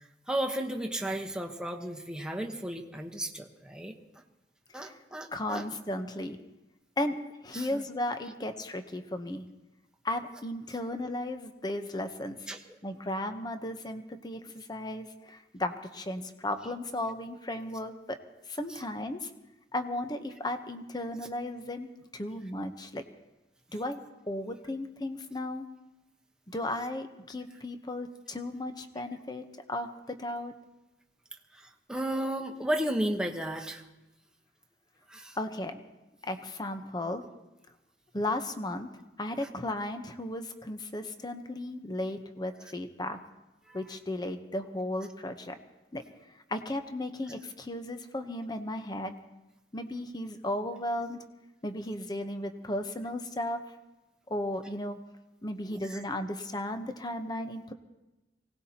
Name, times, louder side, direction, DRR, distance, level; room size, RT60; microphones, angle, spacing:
voice 1, 0.0-4.0 4.7-5.6 7.5-7.9 12.5-12.8 18.7-18.8 31.5-33.8 35.1-35.4 43.7-43.8 55.7-56.0, right 1 dB, 5° right, 2 dB, 1.1 m, -34 dB
voice 2, 5.3-6.4 7.0-7.2 7.4-9.5 10.0-12.5 12.8-18.2 18.5-19.3 19.7-21.9 22.1-23.0 23.7-24.0 24.3-25.7 26.5-30.5 35.4-35.8 36.2-37.2 38.1-38.9 39.2-43.2 43.7-45.5 45.9-46.0 46.5-49.2 49.7-51.2 51.6-53.6 54.3-55.0 55.4-57.7, left 1 dB, 25° left, 7 dB, 0.9 m, -35 dB
24.5 x 18.0 x 2.9 m, 1.0 s
head